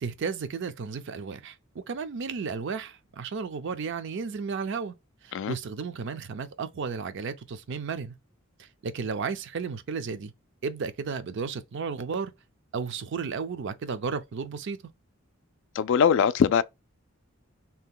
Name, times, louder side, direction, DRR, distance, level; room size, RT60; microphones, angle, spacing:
voice 1, 0.0-4.9 5.2-8.2 8.6-10.3 10.6-12.3 12.7-14.8, right 5 dB, 65° right, 0.5 m, -33 dB
voice 2, 15.7-16.6, left 7 dB, 65° left, 0.3 m, -21 dB
2.8 x 2.2 x 3.6 m
head